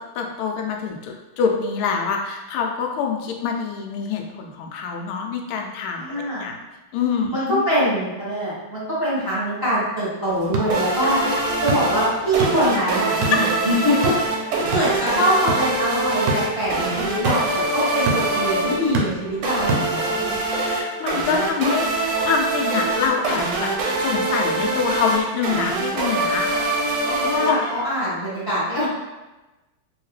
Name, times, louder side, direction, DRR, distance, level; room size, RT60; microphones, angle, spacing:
voice 1, 0.1-6.6 6.9-7.6 11.0-11.6 13.3-13.4 20.4-21.9 22.2-26.5 27.4-27.6, left 6 dB, 80° left, 2 dB, 1.4 m, -25 dB
voice 2, 5.9-6.5 7.3-11.2 11.6-14.1 14.7-20.1 27.2-28.8, equal, 15° left, -10 dB, 0.8 m, -23 dB
sound 1, 10.3-20.4, right 2 dB, 70° right, 1.1 m, -30 dB
sound 2, 10.7-28.1, right 2 dB, 90° right, 1.6 m, -24 dB
3.5 x 2.8 x 3.1 m, 1.1 s
omnidirectional pair, 2.4 m